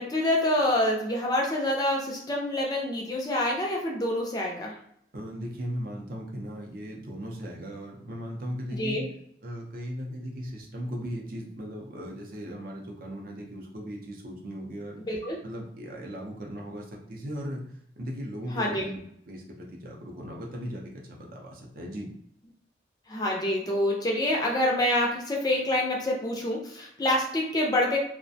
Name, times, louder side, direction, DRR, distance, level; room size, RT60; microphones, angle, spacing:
voice 1, 0.0-4.7 8.7-9.1 15.1-15.4 18.5-18.9 23.1-28.0, left 1 dB, 20° left, -2 dB, 0.4 m, -26 dB
voice 2, 5.1-9.0 9.4-15.0 15.4-19.0 19.3-22.1, equal, 50° right, -1 dB, 0.5 m, -37 dB
2.4 x 2.1 x 2.6 m, 0.69 s
head